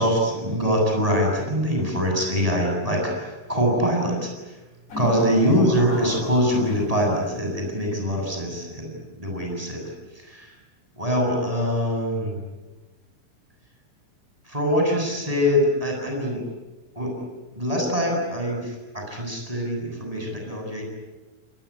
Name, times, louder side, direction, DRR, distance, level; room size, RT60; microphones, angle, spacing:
voice 1, 0.0-4.6 5.0-10.5 11.0-12.4 14.4-16.4 16.9-17.3 17.5-20.8, equal, 5° right, 0 dB, 7.7 m, -24 dB
sound 1, 4.9-7.3, left 1 dB, 30° left, 7.1 m, -34 dB
27.5 x 21.0 x 10.0 m, 1.2 s
omnidirectional pair, 6.0 m